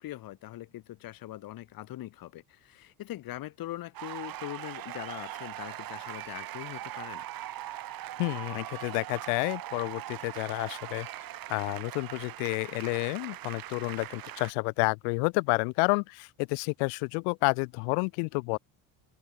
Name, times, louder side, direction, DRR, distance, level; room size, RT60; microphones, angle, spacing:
voice 1, 0.0-7.2, left 15 dB, 55° left, 2.0 m, -42 dB
sound 1, 3.9-14.5, right 13 dB, 55° right, 4.3 m, -40 dB
voice 2, 8.2-11.1 11.5-18.6, left 40 dB or more, 85° left, 1.1 m, -30 dB
supercardioid pair, 105°, 41 cm